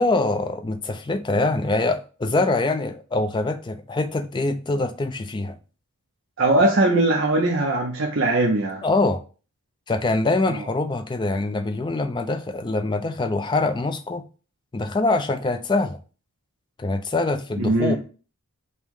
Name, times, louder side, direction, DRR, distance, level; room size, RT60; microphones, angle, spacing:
voice 1, 0.0-5.6 8.8-9.2 9.9-14.2 14.7-16.0 16.8-18.0, left 2 dB, 20° left, 0.3 m, -24 dB
voice 2, 6.4-8.8 10.5-10.6 17.6-18.0, right 2 dB, 55° right, 0.6 m, -20 dB
5.4 x 2.1 x 4.6 m
head